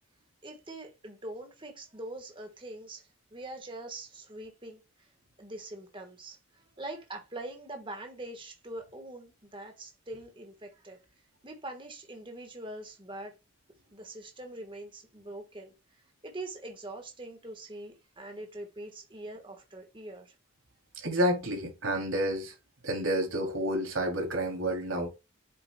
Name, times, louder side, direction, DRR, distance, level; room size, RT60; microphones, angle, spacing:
voice 1, 0.4-5.1 5.4-11.0 11.4-13.3 13.9-15.7 16.2-20.3, right 2 dB, 25° right, 1.3 m, -43 dB
voice 2, 21.0-22.5 22.8-25.1, equal, 85° right, 2.9 m, -29 dB
8.0 x 6.7 x 2.2 m
head